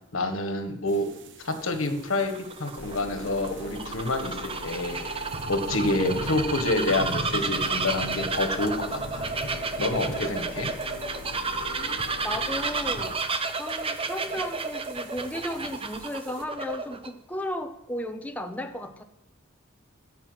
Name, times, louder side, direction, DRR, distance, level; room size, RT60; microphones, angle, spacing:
voice 1, 0.1-1.1 1.4-5.0 5.5-9.2 9.8-10.7, left 2 dB, 80° left, 6 dB, 1.6 m, -28 dB
sound 1, 0.9-16.4, right 2 dB, 60° right, 1.0 m, -42 dB
Bird vocalization bird call bird song, 2.0-17.1, right 4 dB, 25° right, 0.8 m, -32 dB
sound 2, 2.8-13.1, left 4 dB, 65° left, 0.8 m, -42 dB
voice 2, 11.7-13.3 13.6-19.0, left 1 dB, 10° left, 5 dB, 0.6 m, -35 dB
13.5 x 5.7 x 8.0 m, 0.88 s
head